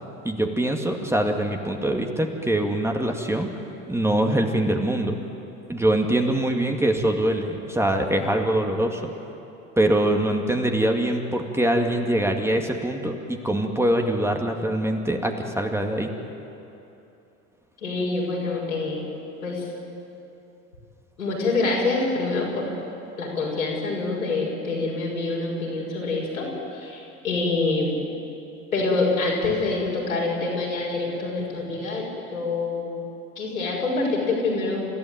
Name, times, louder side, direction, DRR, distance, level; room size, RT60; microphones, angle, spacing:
voice 1, 0.2-3.5 3.9-5.2 5.7-9.0 9.8-16.1, right 1 dB, 5° right, 3 dB, 2.2 m, -23 dB
voice 2, 17.8-19.0 19.4-19.7 21.2-22.7 23.2-26.5 26.7-28.0 28.7-32.9 33.4-34.9, left 3 dB, 85° left, -3 dB, 6.5 m, -26 dB
30.0 x 15.5 x 9.3 m, 2.9 s
figure-of-eight pair, 70°, 41 cm